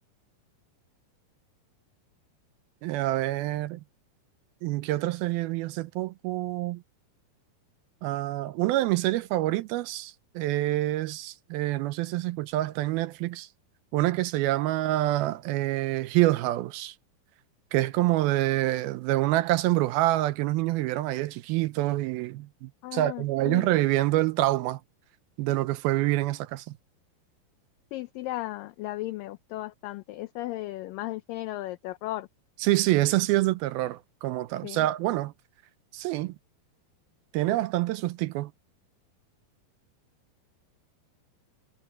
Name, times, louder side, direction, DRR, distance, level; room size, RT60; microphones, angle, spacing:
voice 1, 2.8-3.8 4.6-6.8 8.0-13.5 13.9-17.0 17.7-24.8 25.4-26.7 32.6-35.3 35.9-36.4 37.3-38.5, right 16 dB, 80° right, 2.4 m, -26 dB
voice 2, 22.8-23.7 27.9-32.3 34.6-34.9, left 16 dB, 85° left, 1.9 m, -35 dB
omnidirectional pair, 4.6 m